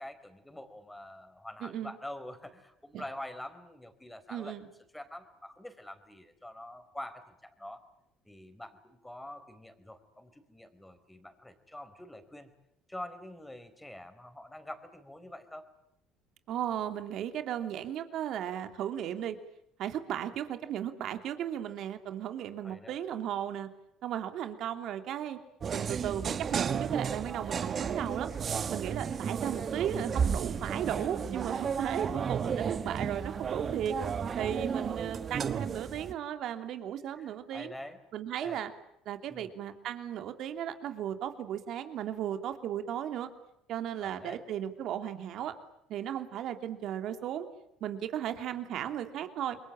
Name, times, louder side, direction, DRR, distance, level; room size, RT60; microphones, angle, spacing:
voice 1, 0.0-4.6 4.9-7.8 8.2-12.5 12.9-15.7 22.6-23.0 37.2-38.0 38.4-38.6 39.3-39.5 44.0-44.4, left 1 dB, 10° left, 9 dB, 4.6 m, -45 dB
voice 2, 1.6-1.9 2.9-3.0 4.3-4.7 16.5-19.4 19.8-23.7 24.0-25.4 25.7-28.3 28.7-34.0 34.4-37.7 38.1-38.7 39.0-43.3 43.7-45.5 45.9-47.5 47.8-49.6, right 10 dB, 65° right, 8 dB, 3.0 m, -35 dB
sound 1, 25.6-36.1, right 6 dB, 40° right, 1.5 m, -33 dB
28.5 x 22.5 x 8.8 m, 0.77 s
supercardioid pair, 80°, 0 cm